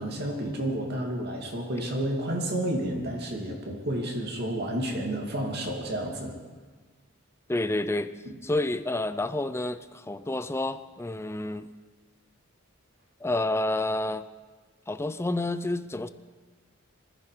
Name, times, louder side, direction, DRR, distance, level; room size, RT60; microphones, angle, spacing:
voice 1, 0.0-6.4 8.3-8.4, right 1 dB, 50° right, 1 dB, 2.7 m, -31 dB
voice 2, 7.5-8.1 8.4-11.7 13.2-14.2 14.9-16.1, left 2 dB, 10° left, 12 dB, 0.5 m, -29 dB
20.0 x 14.5 x 5.0 m, 1.4 s
head